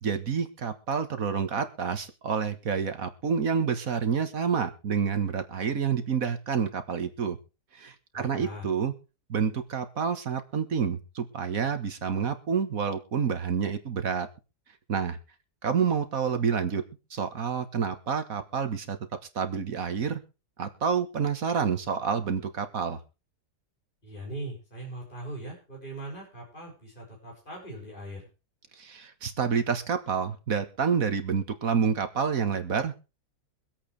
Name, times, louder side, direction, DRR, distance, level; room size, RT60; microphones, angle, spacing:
voice 1, 0.0-7.4 7.7-8.9 9.3-14.3 14.9-15.2 15.6-16.8 17.1-19.0 19.4-20.2 20.6-23.0 28.8-33.0, right 6 dB, 55° right, 9 dB, 1.9 m, -28 dB
voice 2, 8.1-8.6 24.0-28.3, right 1 dB, 30° left, -2 dB, 6.8 m, -40 dB
24.0 x 8.5 x 3.3 m, 0.31 s
omnidirectional pair, 1.7 m